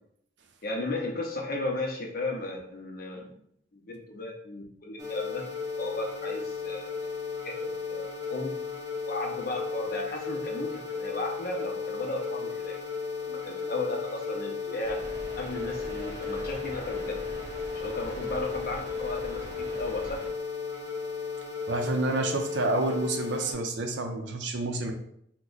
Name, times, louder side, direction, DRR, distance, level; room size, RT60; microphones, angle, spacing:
voice 1, 0.6-3.3 3.7-5.5 5.8-7.1 7.4-8.6 9.1-12.8 13.2-15.0 15.4-17.2 17.7-20.2, left 2 dB, 50° left, 0 dB, 0.7 m, -35 dB
sound 1, 5.0-23.5, left 5 dB, 15° right, 0.6 m, -35 dB
sound 2, 14.8-20.3, equal, 40° right, 1.0 m, -43 dB
voice 2, 21.7-24.9, right 2 dB, 65° right, 4 dB, 0.5 m, -29 dB
2.9 x 2.2 x 3.8 m, 0.70 s
head